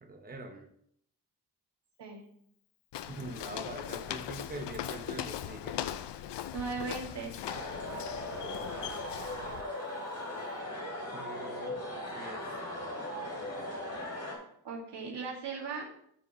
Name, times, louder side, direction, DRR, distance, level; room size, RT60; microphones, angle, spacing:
voice 1, 0.0-0.7 3.1-5.9 11.1-11.8 12.2-12.6, right 3 dB, 20° right, 4 dB, 0.8 m, -44 dB
Walk footsteps, 2.9-9.6, left 11 dB, 80° left, 0.5 m, -40 dB
voice 2, 6.5-7.5 14.6-15.8, right 4 dB, 80° right, -2 dB, 2.2 m, -38 dB
sound 1, 7.4-14.3, left 1 dB, 45° left, 2.7 m, -38 dB
12.0 x 4.8 x 3.2 m, 0.70 s
wide cardioid pair, 160°, 41 cm